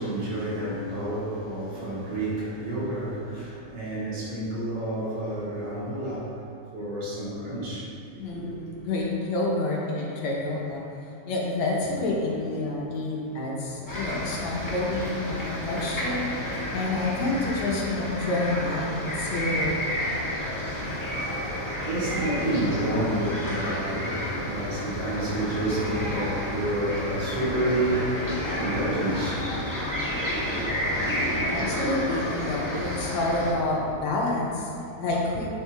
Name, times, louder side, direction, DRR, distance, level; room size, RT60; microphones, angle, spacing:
voice 1, 0.0-6.4 6.7-7.9 8.3-8.4 20.6-30.7, right 1 dB, 70° right, -9 dB, 3.8 m, -30 dB
voice 2, 8.2-10.9 11.3-16.4 16.7-19.8 29.8-30.1 31.5-35.5, left 2 dB, 70° left, -3 dB, 2.2 m, -28 dB
sound 1, 13.9-33.5, left 1 dB, 10° left, 0.9 m, -30 dB
9.1 x 7.8 x 3.5 m, 2.5 s
omnidirectional pair, 3.5 m